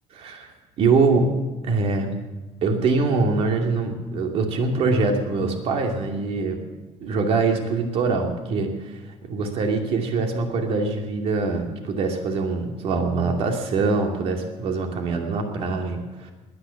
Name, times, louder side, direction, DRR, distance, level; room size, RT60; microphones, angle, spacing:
voice 1, 0.2-0.5 0.8-1.3 1.6-2.2 2.6-6.6 7.0-8.9 9.2-16.3, right 4 dB, 55° right, 3 dB, 2.5 m, -23 dB
19.5 x 9.9 x 7.0 m, 1.2 s
cardioid pair, 160°, 12 cm